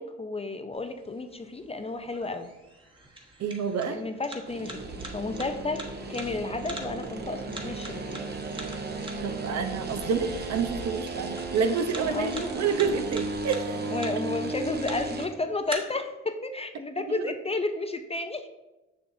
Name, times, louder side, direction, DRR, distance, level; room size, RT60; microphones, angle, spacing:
voice 1, 0.0-2.5 3.9-8.3 12.0-12.5 13.9-18.5, left 3 dB, 20° left, 8 dB, 0.4 m, -32 dB
sound 1, 0.7-15.7, right 1 dB, 15° right, 1.2 m, -45 dB
voice 2, 3.4-4.0 9.2-13.8 14.1-14.2 17.1-17.2, right 5 dB, 60° right, 7 dB, 0.7 m, -28 dB
sound 2, 4.5-15.3, right 3 dB, 35° right, 0.9 m, -35 dB
6.7 x 6.5 x 2.6 m, 1.0 s
cardioid pair, 90°, 30 cm